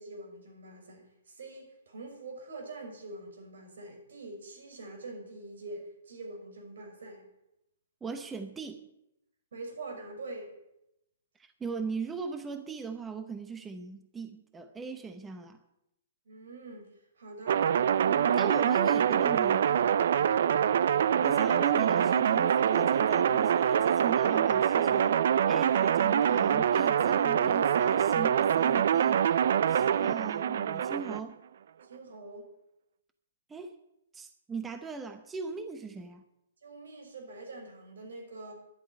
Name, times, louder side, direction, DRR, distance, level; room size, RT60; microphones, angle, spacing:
voice 1, 0.0-7.2 9.5-10.5 16.3-16.9 17.2-17.7 18.0-18.6 31.8-32.5 36.6-38.5, right 2 dB, 85° right, 2 dB, 5.8 m, -44 dB
voice 2, 8.0-8.9 11.4-15.6 18.3-19.7 20.8-20.9 21.2-29.4 29.7-31.4 33.5-33.7 34.1-36.2, right 4 dB, 10° right, 8 dB, 0.7 m, -39 dB
sound 1, 17.5-31.2, right 8 dB, 60° right, 0.5 m, -25 dB
11.0 x 8.1 x 9.9 m, 0.83 s
hypercardioid pair, 170°, 0 cm